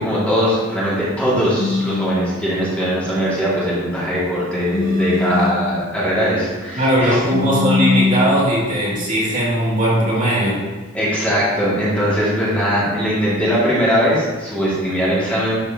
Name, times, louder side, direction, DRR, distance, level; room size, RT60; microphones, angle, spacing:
voice 1, 0.0-7.2 10.9-15.6, equal, 5° left, -9 dB, 2.2 m, -20 dB
sound 1, 1.6-2.2 4.7-5.7 7.3-8.3, left 3 dB, 45° left, 1.8 m, -20 dB
voice 2, 6.7-10.6, equal, 35° right, -7 dB, 2.5 m, -18 dB
12.0 x 6.8 x 2.9 m, 1.3 s
head